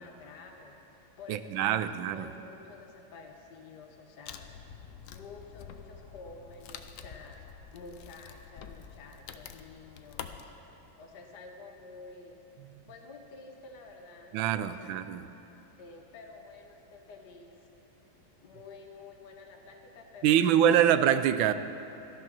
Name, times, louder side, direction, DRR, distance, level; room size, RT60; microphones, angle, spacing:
voice 1, 0.0-4.7 5.1-12.4 12.9-15.0 15.8-17.9 18.4-20.8, left 3 dB, 60° left, 2 dB, 1.5 m, -50 dB
voice 2, 1.3-2.3 14.3-15.3 20.2-21.5, right 10 dB, 80° right, 12 dB, 1.3 m, -24 dB
Wood, 4.3-10.5, left 8 dB, 90° left, 0.7 m, -47 dB
14.0 x 11.5 x 6.1 m, 3.0 s
omnidirectional pair, 2.2 m